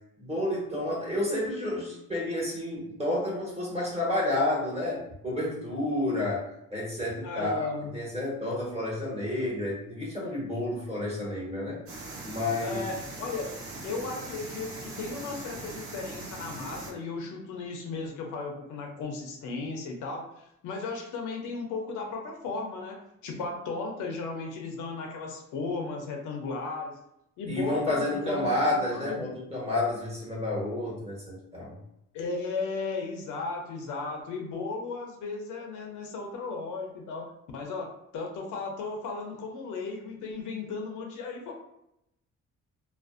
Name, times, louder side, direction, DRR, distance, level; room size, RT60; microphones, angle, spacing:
voice 1, 0.2-11.8 12.2-12.8 27.5-31.7, left 1 dB, 20° right, -5 dB, 1.1 m, -30 dB
voice 2, 7.2-7.9 12.6-13.5 13.8-27.0 27.4-28.6 28.9-29.2 32.1-37.3 37.5-41.5, left 4 dB, 85° left, 2 dB, 0.6 m, -35 dB
sound 1, 11.9-16.9, right 2 dB, 50° right, 0.7 m, -41 dB
2.4 x 2.1 x 2.4 m, 0.81 s
cardioid pair, 90°, 30 cm